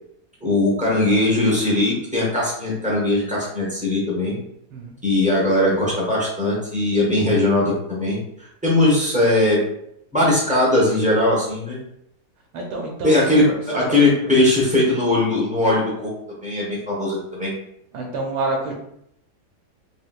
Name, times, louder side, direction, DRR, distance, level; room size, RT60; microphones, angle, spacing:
voice 1, 0.4-4.3 5.0-9.6 10.1-11.8 13.0-16.1 16.4-17.5, left 2 dB, 5° right, -6 dB, 0.6 m, -19 dB
voice 2, 12.5-13.2 13.9-14.0 17.9-18.7, right 2 dB, 85° right, 0 dB, 1.2 m, -27 dB
3.2 x 3.0 x 2.4 m, 0.75 s
omnidirectional pair, 1.8 m